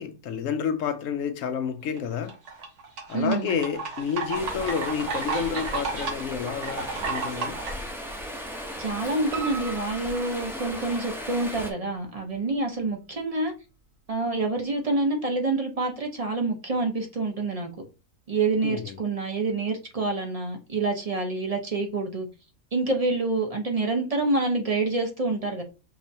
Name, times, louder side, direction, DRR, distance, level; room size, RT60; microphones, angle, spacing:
voice 1, 0.0-2.3 3.1-7.6 18.6-19.0, left 7 dB, 70° left, 0.9 m, -30 dB
sound 1, 2.0-7.7, right 4 dB, 90° right, 1.7 m, -32 dB
voice 2, 3.1-3.6 8.8-13.5 14.1-17.7 18.3-22.3 22.7-25.6, right 3 dB, 30° right, 0.8 m, -27 dB
Stream, 4.3-11.7, equal, 5° right, 0.5 m, -36 dB
Piano, 9.3-11.2 11.7-12.5 12.9-13.0 13.4-13.5 13.8-13.9, right 5 dB, 60° right, 0.7 m, -40 dB
6.0 x 3.2 x 2.7 m
omnidirectional pair, 1.6 m